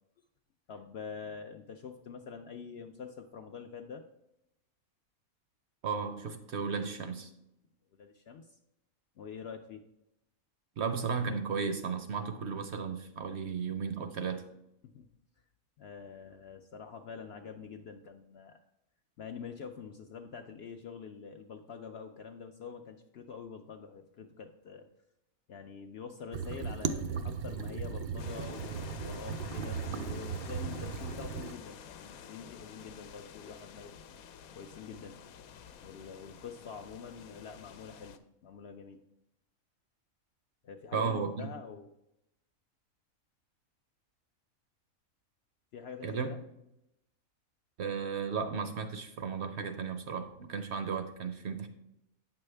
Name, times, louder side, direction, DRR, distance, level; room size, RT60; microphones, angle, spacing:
voice 1, 0.7-4.0 8.0-8.6 9.2-9.8 14.8-15.1 15.8-18.6 19.2-24.9 25.5-33.9 34.5-35.2 35.8-39.0 40.6-41.9 45.7-46.4, left 6 dB, 65° left, 4 dB, 0.6 m, -46 dB
voice 2, 5.8-7.3 10.8-14.4 40.9-41.5 46.0-46.3 47.8-51.7, right 6 dB, 60° right, 8 dB, 0.8 m, -34 dB
sound 1, 26.3-31.5, right 6 dB, 85° right, 0.4 m, -37 dB
sound 2, 28.2-38.2, left 7 dB, 85° left, 1.0 m, -49 dB
8.8 x 6.2 x 3.3 m, 0.85 s
omnidirectional pair, 1.5 m